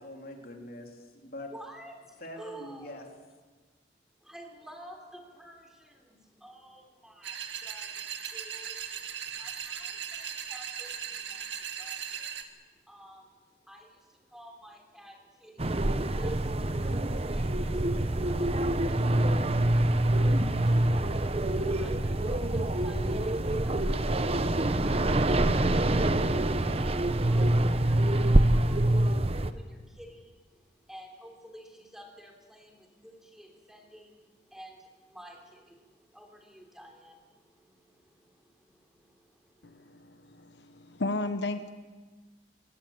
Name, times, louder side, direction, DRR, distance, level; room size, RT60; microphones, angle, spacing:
voice 1, 0.0-1.5 2.2-3.1, left 1 dB, 55° left, 2 dB, 3.5 m, -43 dB
voice 2, 1.5-2.9 4.2-39.9, right 1 dB, 5° right, 2 dB, 3.4 m, -53 dB
sound 1, 7.2-12.4, right 8 dB, 90° right, 1.8 m, -38 dB
sound 2, 15.6-29.5, right 1 dB, 35° right, 0.9 m, -25 dB
voice 3, 39.6-41.7, left 2 dB, 85° left, 9 dB, 1.0 m, -34 dB
22.5 x 17.5 x 8.8 m, 1.4 s
head